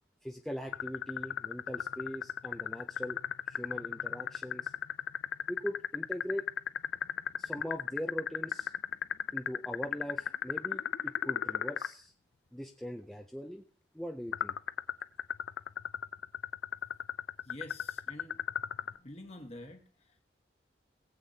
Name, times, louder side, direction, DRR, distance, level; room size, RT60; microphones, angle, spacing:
voice 1, 0.2-3.2 3.5-4.7 5.5-6.5 7.4-8.7 9.3-12.1 12.5-13.6 13.9-14.5, equal, ahead, 1 dB, 0.5 m, -41 dB
sound 1, 0.7-11.9 14.3-19.0, left 8 dB, 75° left, 0.4 m, -34 dB
voice 2, 17.4-18.4 18.9-20.2, left 1 dB, 35° left, 5 dB, 1.4 m, -48 dB
19.0 x 8.2 x 2.8 m, 0.41 s
head